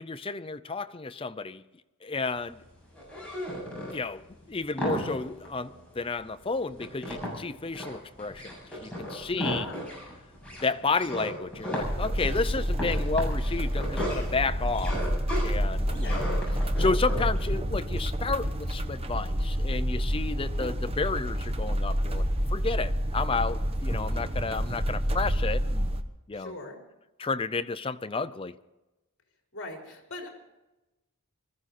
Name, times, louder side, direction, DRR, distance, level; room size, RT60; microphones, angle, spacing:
voice 1, 0.0-1.6 2.0-2.6 3.9-4.2 4.5-9.7 10.6-15.0 15.4-16.3 16.8-22.2 22.5-25.9 26.3-26.5 27.2-28.5, left 4 dB, 25° left, 12 dB, 0.5 m, -31 dB
sound 1, 2.2-17.5, equal, 5° left, 7.6 m, -36 dB
voice 2, 9.4-9.8 15.8-16.3 26.3-26.8 29.5-30.3, left 2 dB, 55° left, 1 dB, 4.4 m, -41 dB
sound 2, 11.8-26.0, equal, 25° right, 1.0 m, -28 dB
20.5 x 14.5 x 4.3 m, 1.0 s
head